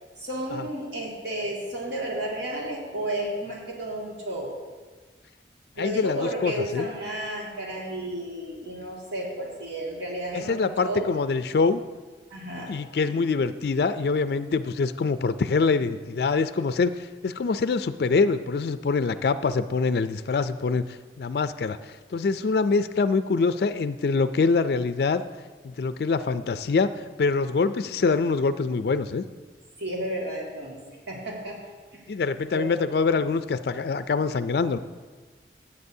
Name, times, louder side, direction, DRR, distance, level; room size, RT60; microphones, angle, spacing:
voice 1, 0.2-4.5 5.8-11.1 12.3-12.8 29.8-30.8 31.1-31.6 31.9-32.0 32.5-32.7, right 1 dB, 80° right, -3 dB, 2.1 m, -32 dB
voice 2, 5.8-6.9 10.3-11.8 12.7-20.8 21.2-21.8 22.1-25.2 25.6-26.9 27.2-29.2 32.1-34.8, left 4 dB, 60° left, 11 dB, 0.3 m, -24 dB
16.5 x 8.3 x 2.7 m, 1.4 s
head